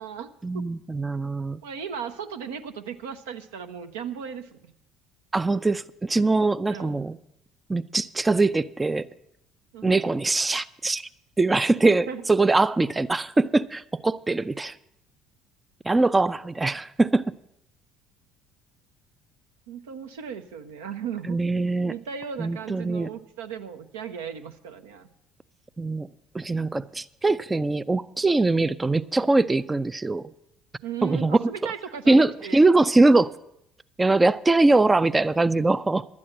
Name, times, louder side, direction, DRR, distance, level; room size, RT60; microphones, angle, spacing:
voice 1, 0.4-1.6 5.3-7.2 7.7-9.1 9.8-11.1 11.4-14.8 15.9-17.2 21.3-21.9 22.4-23.1 25.8-26.1 26.3-30.2 31.0-31.4 32.1-33.3 34.0-36.1, right 2 dB, 20° right, 0.4 m, -22 dB
voice 2, 1.6-4.7 6.7-7.0 9.7-10.0 11.8-12.2 19.7-21.4 21.9-25.1 30.8-32.6, right 7 dB, 75° right, 0.7 m, -36 dB
12.0 x 8.5 x 7.7 m
hypercardioid pair, 60°, 0 cm